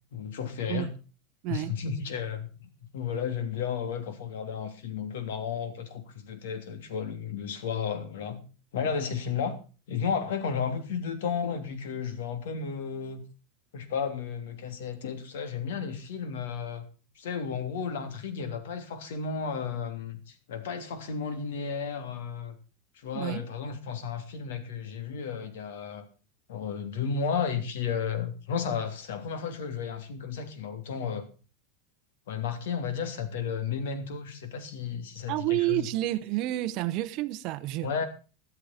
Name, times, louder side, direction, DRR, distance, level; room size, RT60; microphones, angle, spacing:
voice 1, 0.1-0.9 1.5-8.4 8.7-9.6 9.9-13.2 13.7-16.8 17.1-22.6 22.9-26.1 26.5-31.3 32.3-35.9 37.8-38.1, left 6 dB, 90° left, 3.1 m, -33 dB
voice 2, 1.4-1.8 23.1-23.5 35.3-38.0, right 16 dB, 35° right, 0.8 m, -30 dB
13.5 x 13.0 x 4.4 m
supercardioid pair, 180°, 0 cm